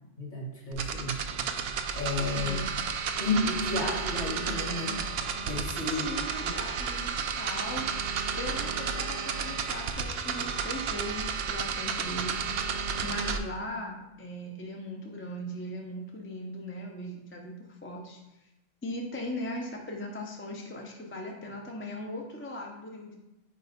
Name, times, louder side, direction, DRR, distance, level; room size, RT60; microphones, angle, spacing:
voice 1, 0.2-1.2 1.9-2.6 3.2-5.0 5.3-6.1 6.4-6.5, left 2 dB, 50° left, -3 dB, 1.7 m, -32 dB
sound 1, 0.7-13.4, right 6 dB, 70° right, 0.8 m, -32 dB
voice 2, 2.4-2.7 5.9-7.9 8.4-12.4 13.0-18.5 18.8-23.2, left 1 dB, 15° left, 0 dB, 0.5 m, -39 dB
4.6 x 4.4 x 5.1 m, 0.94 s
omnidirectional pair, 1.1 m